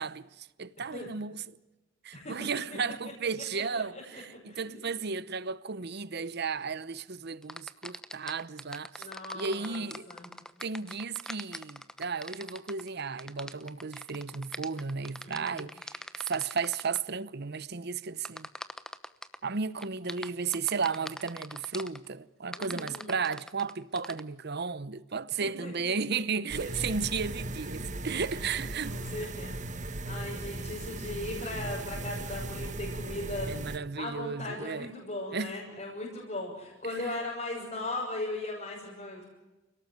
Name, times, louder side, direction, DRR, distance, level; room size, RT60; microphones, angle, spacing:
voice 1, 0.0-1.6 2.0-9.1 9.3-10.1 10.6-18.5 19.4-29.0 29.4-29.5 33.5-34.9 35.3-35.6, right 5 dB, 55° right, 0.9 m, -34 dB
voice 2, 2.1-2.5 3.5-4.0 4.5-4.8 9.0-10.3 15.2-15.6 22.6-23.1 25.4-26.0 26.6-26.9 28.3-28.5 28.9-33.5 34.0-39.2, left 2 dB, 40° left, 6.9 m, -38 dB
sound 1, 7.4-17.0 18.2-19.4 19.8-22.0 22.5-24.2, left 1 dB, 5° left, 1.0 m, -42 dB
sound 2, 26.5-33.8, right 2 dB, 40° right, 1.7 m, -37 dB
29.5 x 18.5 x 9.4 m
head